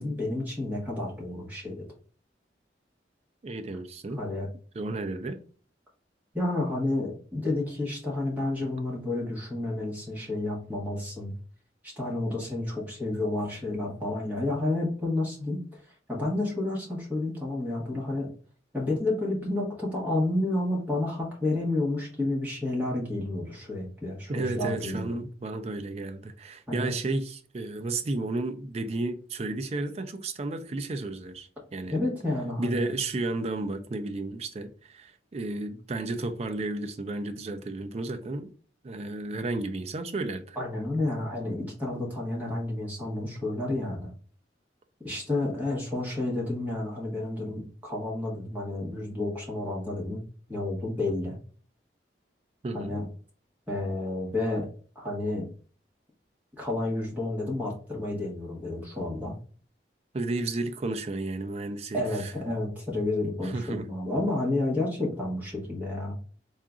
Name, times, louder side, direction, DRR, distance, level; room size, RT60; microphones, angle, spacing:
voice 1, 0.0-1.9 4.2-4.5 6.3-11.3 11.8-15.6 16.1-18.3 18.7-25.2 26.7-26.9 31.9-32.9 40.6-44.1 45.0-50.2 50.5-51.4 52.7-53.1 53.7-54.7 54.9-55.5 56.6-59.3 61.9-66.1, left 2 dB, 10° right, 1.2 m, -30 dB
voice 2, 3.4-4.2 4.7-5.4 24.3-32.0 32.6-38.5 38.8-40.6 52.6-53.0 60.1-62.3 63.4-63.9, right 2 dB, 35° right, 0.4 m, -32 dB
3.7 x 2.4 x 3.7 m
head